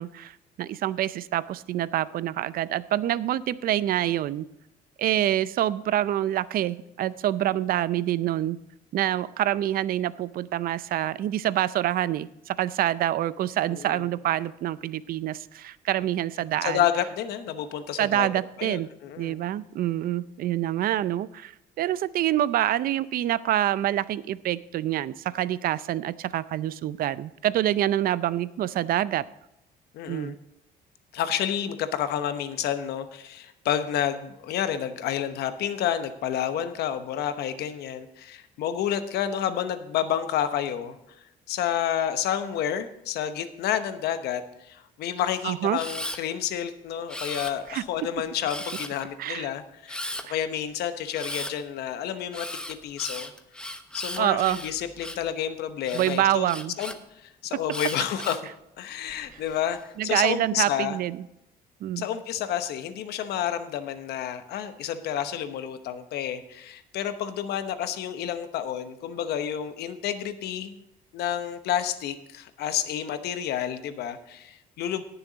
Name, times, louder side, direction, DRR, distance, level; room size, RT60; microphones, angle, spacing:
voice 1, 0.0-4.4 5.0-8.6 8.9-16.8 18.0-18.9 19.2-29.2 30.1-30.4 45.4-45.8 47.7-47.8 49.2-49.5 54.2-54.6 55.9-56.7 59.3-59.4 60.0-61.2 61.8-62.0, right 12 dB, 60° right, 17 dB, 0.5 m, -26 dB
voice 2, 13.7-14.1 16.6-18.3 18.6-19.3 29.9-30.4 31.1-41.0 41.5-50.0 50.3-53.3 53.9-56.5 56.8-58.4 58.8-61.0 62.0-70.7 71.1-75.0, left 10 dB, 75° left, 10 dB, 1.0 m, -30 dB
Camera, 45.7-46.2 47.1-47.8 48.5-49.0 49.9-50.2 51.1-51.5 52.3-55.3 55.8-57.0 57.7-58.5 59.1-59.6, left 1 dB, 5° left, 0.9 m, -36 dB
17.5 x 7.0 x 4.0 m, 0.85 s
cardioid pair, 110°, 17 cm